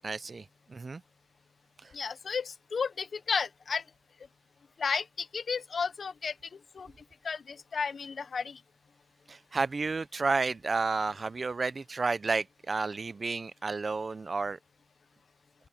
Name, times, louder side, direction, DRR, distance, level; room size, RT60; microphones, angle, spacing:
voice 1, 0.0-1.0 9.3-14.6, right 4 dB, 45° right, 0.8 m, -31 dB
voice 2, 1.9-3.8 4.8-6.3 6.7-6.9 7.2-8.6, left 5 dB, 60° left, 1.1 m, -33 dB
open air
supercardioid pair, 50°, 0 cm